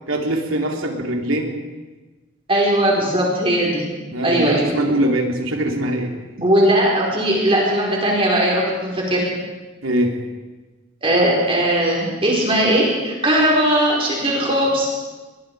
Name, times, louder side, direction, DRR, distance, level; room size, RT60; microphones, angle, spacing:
voice 1, 0.1-1.5 4.1-6.5 9.8-10.1, right 1 dB, 80° right, 2 dB, 3.6 m, -22 dB
voice 2, 2.5-3.9 4.2-4.7 6.4-9.3 11.0-14.9, right 1 dB, 25° right, -3 dB, 5.1 m, -18 dB
28.0 x 22.0 x 5.0 m, 1.2 s
head